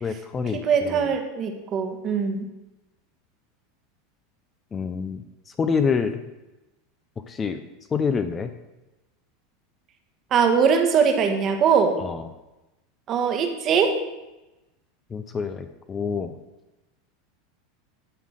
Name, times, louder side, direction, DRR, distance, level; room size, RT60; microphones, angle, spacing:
voice 1, 0.0-1.1 4.7-5.2 5.6-6.2 7.3-7.6 7.9-8.5 12.0-12.3 15.1-16.3, left 5 dB, 20° left, 9 dB, 0.5 m, -27 dB
voice 2, 0.5-2.5 10.3-12.0 13.1-14.0, right 6 dB, 35° right, 5 dB, 1.2 m, -21 dB
11.0 x 3.8 x 6.4 m, 1.0 s
supercardioid pair, 145°, 0 cm